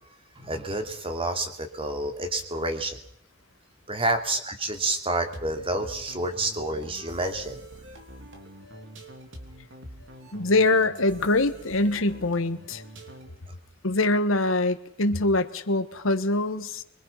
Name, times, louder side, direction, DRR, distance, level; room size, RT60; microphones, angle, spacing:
voice 1, 0.4-3.0 3.9-7.6, right 2 dB, 30° right, 5 dB, 2.9 m, -29 dB
sound 1, 5.3-13.5, right 1 dB, 70° right, 3.4 m, -45 dB
voice 2, 10.3-12.8 13.8-16.8, left 2 dB, 85° left, 9 dB, 1.5 m, -24 dB
24.5 x 23.0 x 5.7 m, 0.67 s
head